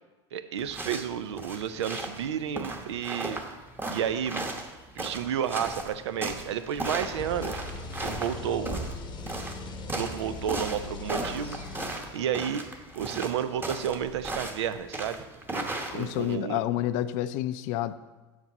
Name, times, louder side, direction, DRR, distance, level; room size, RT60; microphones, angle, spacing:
voice 1, 0.3-3.4 3.9-4.5 5.0-7.6 8.0-8.9 9.9-11.6 12.1-12.7 13.0-15.2 15.9-16.6, right 9 dB, 85° right, 11 dB, 0.5 m, -31 dB
sound 1, 0.6-16.3, right 2 dB, 15° right, 1.0 m, -36 dB
sound 2, 7.0-12.5, left 3 dB, 30° left, 0.8 m, -40 dB
voice 2, 15.9-17.9, left 13 dB, 60° left, 13 dB, 0.4 m, -29 dB
7.3 x 6.0 x 3.9 m, 1.2 s
hypercardioid pair, 95°, 14 cm